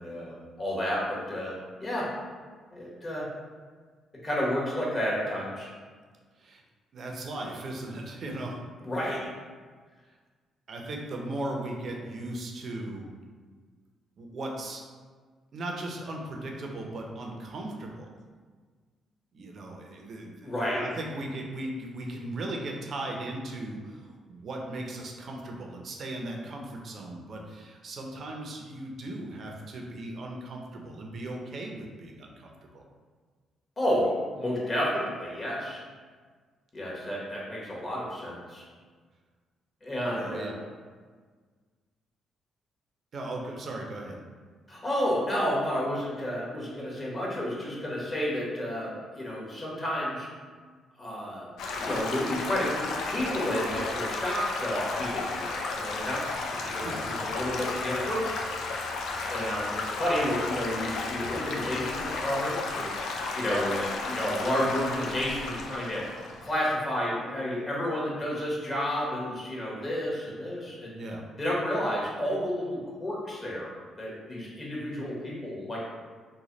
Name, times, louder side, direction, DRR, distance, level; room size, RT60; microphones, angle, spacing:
voice 1, 0.0-1.5 1.8-2.1 2.7-3.3 4.2-5.7 8.8-9.3 20.4-20.9 33.8-35.8 36.7-38.6 39.8-40.6 44.7-50.3 51.0-51.5 51.8-56.4 56.6-58.3 59.3-66.0 66.4-70.9 71.4-73.7 74.0-75.8, equal, 30° left, -5 dB, 1.2 m, -31 dB
voice 2, 6.9-8.6 8.9-9.1 10.7-13.1 14.2-14.8 15.5-18.1 19.3-32.9 40.1-40.5 43.1-44.2 56.6-57.2 70.9-71.2, right 1 dB, 55° right, 1 dB, 0.6 m, -37 dB
Stream / Gurgling / Trickle dribble, 51.6-66.7, left 3 dB, 80° left, 0.4 m, -33 dB
3.1 x 2.2 x 3.9 m, 1.5 s
cardioid pair, 90°, 0 cm